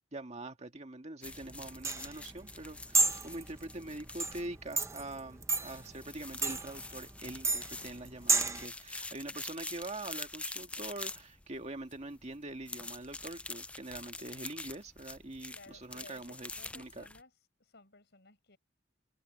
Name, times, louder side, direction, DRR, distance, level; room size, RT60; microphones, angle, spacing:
voice 1, 0.0-17.0, right 2 dB, 35° right, 1.8 m, -44 dB
sound 1, 1.2-17.2, left 2 dB, 5° left, 0.4 m, -46 dB
sound 2, 1.3-8.7, right 3 dB, 15° right, 0.9 m, -33 dB
voice 2, 15.5-17.3 17.6-18.6, left 3 dB, 60° left, 7.8 m, -57 dB
head